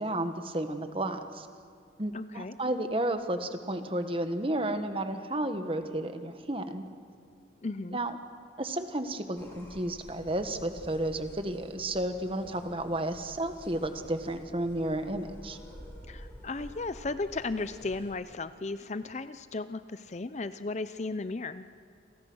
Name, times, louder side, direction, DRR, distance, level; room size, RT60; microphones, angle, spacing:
voice 1, 0.0-1.5 2.0-6.8 7.9-8.2 8.6-15.6, right 1 dB, 30° right, 8 dB, 1.5 m, -32 dB
voice 2, 2.1-2.5 7.6-8.0 16.1-21.7, left 3 dB, 35° left, 13 dB, 0.5 m, -35 dB
sound 1, 9.4-18.1, equal, 15° left, 4.8 m, -50 dB
29.5 x 23.5 x 6.3 m, 2.4 s
head